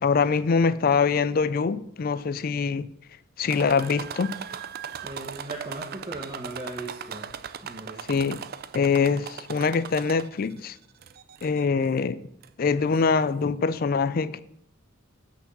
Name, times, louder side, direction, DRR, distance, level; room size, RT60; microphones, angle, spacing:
voice 1, 0.0-2.9 3.4-4.4 8.1-8.4 8.7-10.8 11.4-12.2 12.6-14.4, left 5 dB, 45° left, 0.4 m, -24 dB
sound 1, 3.5-10.5 11.0-11.6 12.4-12.5 12.9-13.0, right 7 dB, 45° right, 0.4 m, -38 dB
voice 2, 5.0-7.3 7.6-8.0, right 2 dB, 25° right, 0.9 m, -38 dB
6.2 x 5.9 x 7.1 m
head